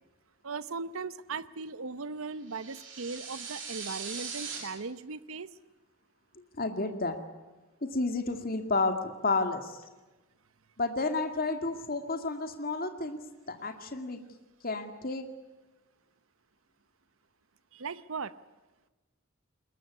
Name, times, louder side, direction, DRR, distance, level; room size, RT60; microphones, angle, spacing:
voice 1, 0.4-5.5 17.7-18.3, right 4 dB, 80° right, 15 dB, 0.8 m, -38 dB
sound 1, 2.5-4.6, right 6 dB, 60° right, 7.5 m, -40 dB
voice 2, 6.6-7.2 7.9-9.8 10.8-13.2 13.5-14.2 14.6-15.3, left 3 dB, 45° left, 7 dB, 2.2 m, -31 dB
22.0 x 21.0 x 9.7 m, 1.1 s
head